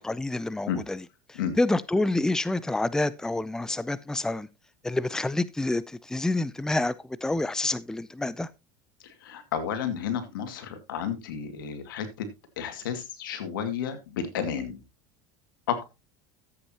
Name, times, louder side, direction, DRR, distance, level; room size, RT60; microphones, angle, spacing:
voice 1, 0.0-4.5 4.8-6.9 7.2-8.5, left 2 dB, 5° left, 0.5 m, -28 dB
voice 2, 9.0-12.3 12.6-14.8 15.7-15.8, left 8 dB, 90° left, 2.2 m, -32 dB
13.5 x 8.3 x 2.9 m
supercardioid pair, 105°, 11 cm